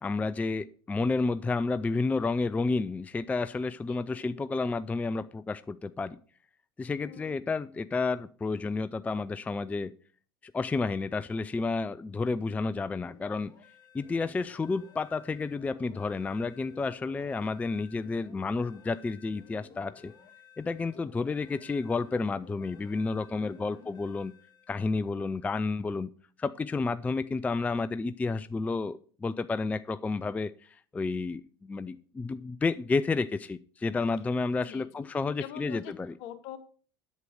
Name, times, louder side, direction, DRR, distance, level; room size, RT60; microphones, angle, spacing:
voice 1, 0.0-6.2 6.8-9.9 10.4-13.5 13.9-20.1 20.6-24.3 24.7-26.1 26.4-36.1, left 3 dB, 10° left, 15 dB, 0.3 m, -31 dB
voice 2, 3.9-4.3 7.0-7.4 15.8-16.0 23.3-23.9 34.6-35.1 35.4-35.9 36.2-36.6, left 11 dB, 60° left, 11 dB, 1.2 m, -45 dB
sound 1, 12.9-25.1, left 6 dB, 35° left, 2.6 m, -55 dB
8.1 x 7.6 x 5.0 m, 0.43 s
hypercardioid pair, 75°, 12 cm